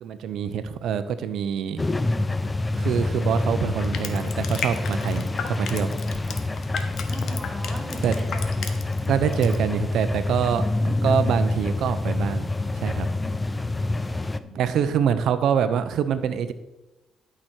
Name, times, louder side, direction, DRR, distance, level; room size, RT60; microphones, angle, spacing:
voice 1, 0.0-1.8 2.7-5.9 8.0-8.2 9.1-12.5 12.7-13.1 14.6-16.5, right 8 dB, 75° right, 11 dB, 0.8 m, -25 dB
sound 1, 1.8-14.4, left 2 dB, 20° left, 0.5 m, -27 dB
Crushing, 3.8-9.1 9.3-9.6, left 6 dB, 65° left, 1.1 m, -34 dB
voice 2, 7.1-8.9 14.4-14.9, right 1 dB, 25° right, 0 dB, 2.7 m, -40 dB
11.5 x 6.2 x 4.5 m, 1.0 s
cardioid pair, 90°, 0 cm